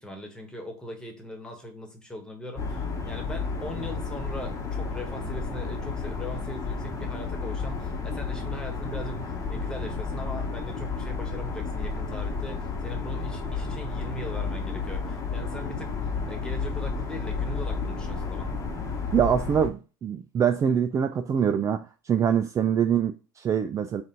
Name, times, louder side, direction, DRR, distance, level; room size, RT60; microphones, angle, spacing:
voice 1, 0.0-18.5, equal, 5° left, 1.5 m, -40 dB
sound 1, 2.6-19.7, left 4 dB, 25° left, 1.1 m, -32 dB
voice 2, 19.1-24.0, right 8 dB, 25° right, 0.3 m, -24 dB
4.1 x 2.5 x 3.8 m
hypercardioid pair, 90°, 12 cm